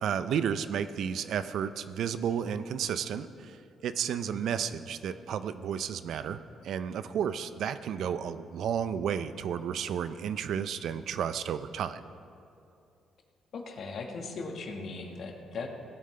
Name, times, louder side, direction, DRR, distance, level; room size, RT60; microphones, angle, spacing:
voice 1, 0.0-3.6 3.8-12.0, right 8 dB, 70° right, 12 dB, 0.5 m, -32 dB
voice 2, 13.5-15.7, left 4 dB, 60° left, 3 dB, 1.4 m, -38 dB
17.0 x 9.2 x 3.3 m, 2.6 s
cardioid pair, 90°, 0 cm